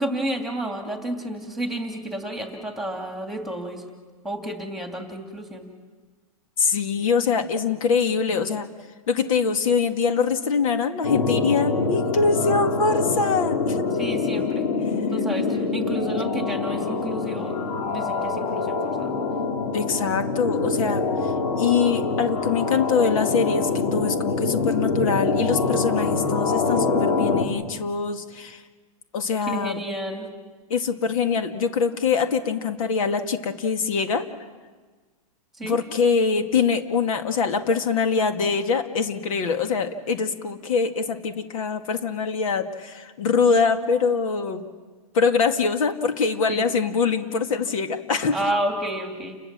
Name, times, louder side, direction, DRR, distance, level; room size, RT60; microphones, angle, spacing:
voice 1, 0.0-3.8 4.2-5.7 13.9-14.7 15.1-17.6 17.9-19.1 29.4-30.3 35.6-35.8 46.5-46.6 48.3-49.4, right 1 dB, ahead, 4 dB, 2.5 m, -31 dB
voice 2, 6.6-8.7 9.1-13.9 19.7-28.6 29.1-29.8 30.7-34.3 35.6-44.6 45.1-48.4, left 5 dB, 65° left, 7 dB, 2.1 m, -23 dB
sound 1, 11.0-27.4, left 4 dB, 80° left, 3.5 m, -25 dB
29.5 x 21.0 x 7.6 m, 1.4 s
hypercardioid pair, 155°, 19 cm